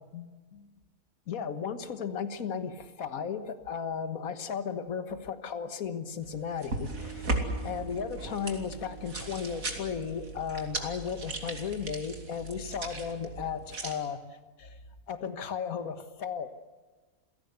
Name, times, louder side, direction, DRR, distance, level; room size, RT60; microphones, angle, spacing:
voice 1, 0.1-0.7 1.3-14.8 15.1-16.5, left 6 dB, 75° left, 10 dB, 1.8 m, -35 dB
sound 1, 6.2-13.9, right 2 dB, 70° right, 3.2 m, -37 dB
sound 2, 6.9-13.6, right 6 dB, 90° right, 3.1 m, -46 dB
28.0 x 17.5 x 8.1 m, 1.3 s
omnidirectional pair, 1.5 m